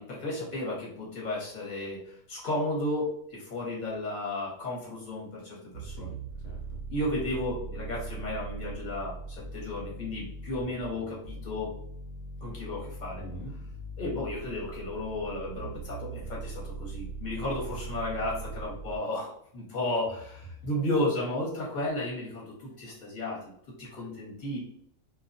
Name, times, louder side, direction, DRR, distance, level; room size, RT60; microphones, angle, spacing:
voice 1, 0.0-6.1 6.9-11.7 12.4-13.2 14.0-23.4 23.8-24.6, left 1 dB, 40° left, -5 dB, 1.0 m, -33 dB
sound 1, 5.7-19.0, right 3 dB, 80° right, 0.9 m, -40 dB
voice 2, 5.8-6.8 13.2-13.5 17.9-18.0 20.5-20.7, equal, 80° left, -1 dB, 1.0 m, -45 dB
2.4 x 2.2 x 2.5 m, 0.68 s
omnidirectional pair, 1.4 m